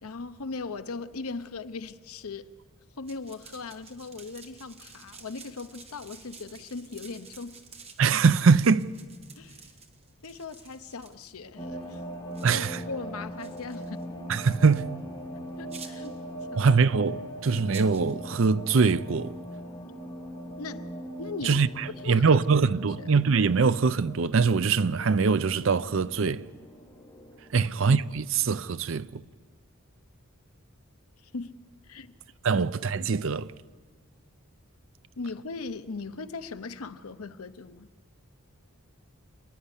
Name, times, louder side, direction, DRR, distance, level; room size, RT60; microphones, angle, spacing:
voice 1, 0.0-2.5 3.0-7.6 9.4-9.7 10.2-12.0 12.5-14.0 15.6-16.2 16.5-16.7 20.6-21.6 21.9-22.5 27.6-27.8 31.2-32.1 32.5-32.6 35.2-37.9, left 4 dB, 85° left, 0.8 m, -39 dB
sound 1, 3.1-11.3 11.8-11.9 12.3-12.5 13.4-14.0 14.7-14.8 15.7-16.2 17.7-18.1, right 5 dB, 30° right, 1.3 m, -50 dB
voice 2, 8.0-8.9 12.4-12.8 14.3-14.9 16.6-19.4 21.4-26.5 27.5-29.2 32.4-33.5, right 5 dB, 60° right, 0.5 m, -23 dB
sound 2, 11.6-27.5, right 1 dB, 20° left, 2.6 m, -41 dB
28.5 x 10.5 x 9.9 m
head